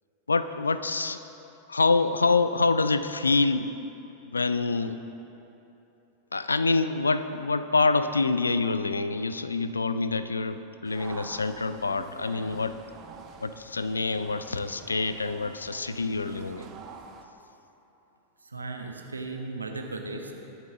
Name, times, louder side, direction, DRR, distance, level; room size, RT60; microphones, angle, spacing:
voice 1, 0.3-1.2 1.7-3.7 4.3-5.0 6.3-12.7 13.4-16.6, left 3 dB, 75° left, 12 dB, 0.4 m, -26 dB
sound 1, 10.8-17.2, right 6 dB, 35° right, 0.9 m, -47 dB
voice 2, 18.4-20.3, right 3 dB, 80° right, 3 dB, 1.1 m, -36 dB
21.0 x 7.3 x 3.7 m, 3.0 s
figure-of-eight pair, 90°, 0 cm